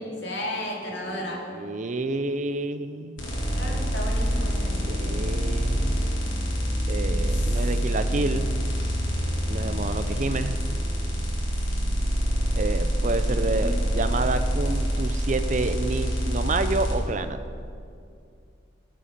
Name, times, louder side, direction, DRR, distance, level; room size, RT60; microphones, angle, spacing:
voice 1, 0.2-1.4 3.5-5.0 7.3-7.7 13.1-13.8, left 1 dB, 60° left, -2 dB, 2.6 m, -34 dB
voice 2, 1.0-3.2 4.8-6.0 6.9-8.5 9.5-10.6 12.6-17.4, right 3 dB, 40° right, 10 dB, 0.5 m, -29 dB
sound 1, 3.2-16.9, equal, 80° left, 3.6 m, -26 dB
15.0 x 7.7 x 6.6 m, 2.4 s
head